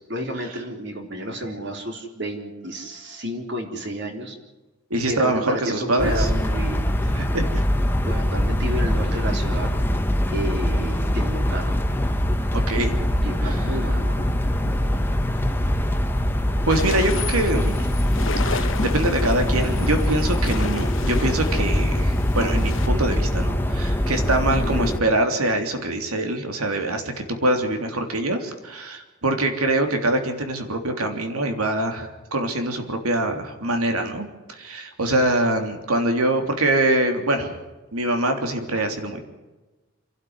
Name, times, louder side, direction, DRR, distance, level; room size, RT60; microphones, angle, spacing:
voice 1, 0.1-4.3 5.1-6.9 8.1-9.7 10.3-11.8 13.2-14.3 24.5-24.9, right 1 dB, 50° right, 4 dB, 4.1 m, -31 dB
voice 2, 4.9-6.3 7.1-7.6 12.5-12.9 13.4-13.7 16.7-17.9 18.4-37.6 37.9-39.2, right 1 dB, 80° right, 6 dB, 3.3 m, -24 dB
sound 1, 6.0-25.0, equal, 10° left, 1.2 m, -23 dB
sound 2, 16.7-22.9, left 4 dB, 60° left, 1.0 m, -33 dB
28.5 x 12.5 x 9.8 m, 1.2 s
head